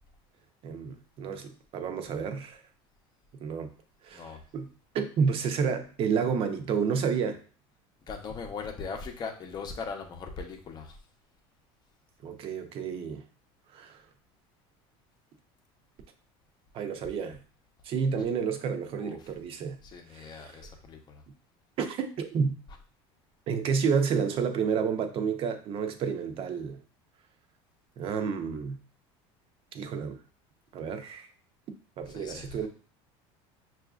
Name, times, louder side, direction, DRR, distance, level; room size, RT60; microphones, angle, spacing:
voice 1, 0.6-2.6 3.4-3.7 4.0-4.7 4.9-7.4 12.2-13.2 13.7-14.0 16.7-17.4 17.8-19.8 20.1-20.7 21.8-22.6 23.5-26.8 28.0-28.8 29.7-30.2 30.7-31.3 32.0-32.7, right 6 dB, 45° right, 7 dB, 0.6 m, -30 dB
voice 2, 8.1-11.0 19.0-19.2 19.8-21.2 32.1-32.6, left 5 dB, 30° left, 4 dB, 0.7 m, -39 dB
5.8 x 2.5 x 2.4 m, 0.40 s
supercardioid pair, 120°, 13 cm